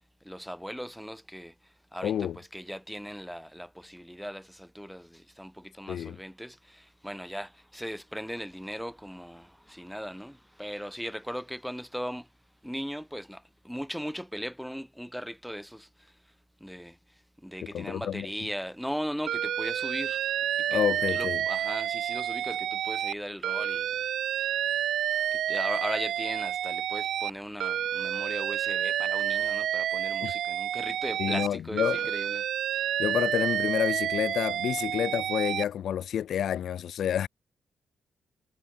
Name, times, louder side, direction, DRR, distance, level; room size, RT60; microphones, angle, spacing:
voice 1, 0.2-1.5 1.9-12.3 12.6-15.9 16.6-17.0 17.4-20.2 20.7-20.8 21.1-23.9 25.3-32.4, equal, ahead, 4.7 m, -38 dB
voice 2, 2.0-2.4 5.9-6.2 17.6-18.5 20.7-21.4 30.2-30.3 31.2-32.0 33.0-37.3, left 10 dB, 65° left, 2.4 m, -29 dB
Alarm, 19.3-23.1 23.4-27.3 27.6-31.5 31.8-35.6, right 10 dB, 75° right, 1.5 m, -29 dB
cardioid pair, 120°, 0 cm